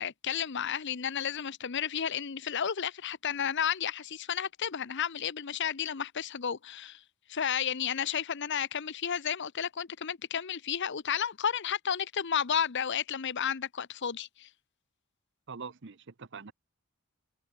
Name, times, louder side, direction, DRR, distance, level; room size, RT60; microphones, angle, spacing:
voice 1, 0.0-7.0 7.3-14.5, left 8 dB, 55° left, 0.7 m, -32 dB
voice 2, 15.5-16.5, right 5 dB, 55° right, 0.8 m, -43 dB
head